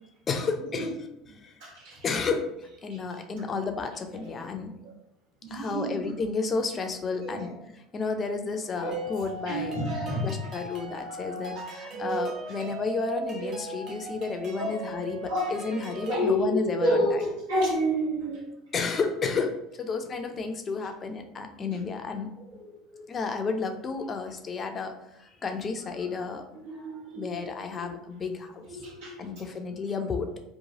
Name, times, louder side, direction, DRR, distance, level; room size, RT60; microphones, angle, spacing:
voice 1, 0.3-0.9 1.4-1.5 2.0-4.7 5.5-7.5 7.9-9.8 10.2-17.0 18.7-22.3 23.1-26.4 27.1-28.8 29.2-30.3, left 4 dB, 35° left, 5 dB, 0.4 m, -32 dB
voice 2, 1.6-2.0 2.9-3.0 4.5-4.9 5.4-6.1 7.2-7.5 8.8-9.1 9.5-10.5 11.1-11.6 11.9-12.1 14.6-14.8 15.3-15.6 16.1-18.5 21.7-21.8 22.5-23.1 26.6-27.4 27.8-27.9 28.7-29.6, equal, 80° right, -4 dB, 1.2 m, -30 dB
sound 1, 8.9-16.3, right 3 dB, 50° right, 0.8 m, -38 dB
2.9 x 2.2 x 2.8 m, 0.85 s
hypercardioid pair, 80°, 0 cm